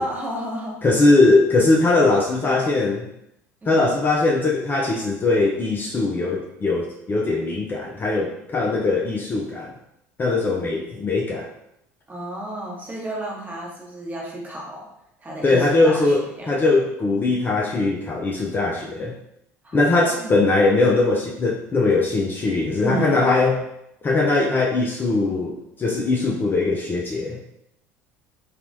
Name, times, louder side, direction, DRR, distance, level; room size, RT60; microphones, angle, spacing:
voice 1, 0.0-0.8 3.6-3.9 12.1-14.9 15.2-16.5 19.6-20.4 22.8-23.2, right 1 dB, 20° right, -2 dB, 0.9 m, -32 dB
voice 2, 0.8-3.1 3.7-9.7 10.2-11.5 15.4-19.1 19.7-23.6 24.0-27.4, left 3 dB, 25° left, -1 dB, 0.4 m, -20 dB
2.9 x 2.3 x 2.6 m, 0.81 s
hypercardioid pair, 65°, 8 cm